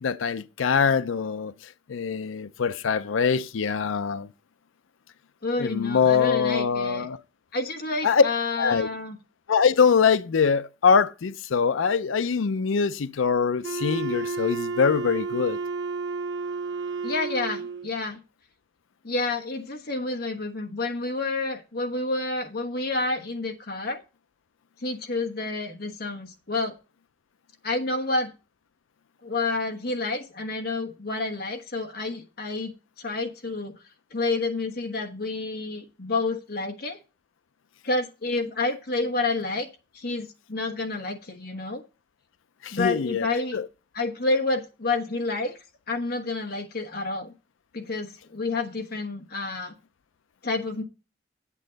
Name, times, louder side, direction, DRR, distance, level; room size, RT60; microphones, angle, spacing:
voice 1, 0.0-1.5 1.9-4.3 5.5-7.2 8.0-8.2 8.6-8.9 9.5-15.6 42.6-43.7, left 6 dB, 90° left, 0.5 m, -23 dB
voice 2, 5.4-7.1 7.5-9.2 17.0-18.2 19.0-24.0 24.8-26.7 27.6-28.3 29.2-32.7 33.0-33.8 34.1-37.0 37.8-39.7 39.9-41.8 42.7-43.6 43.9-45.5 45.9-47.3 47.7-49.7 50.4-50.8, left 3 dB, 50° left, 1.2 m, -29 dB
Wind instrument woodwind instrument, 13.6-17.9, right 4 dB, 70° right, 0.6 m, -31 dB
8.4 x 7.5 x 3.9 m
head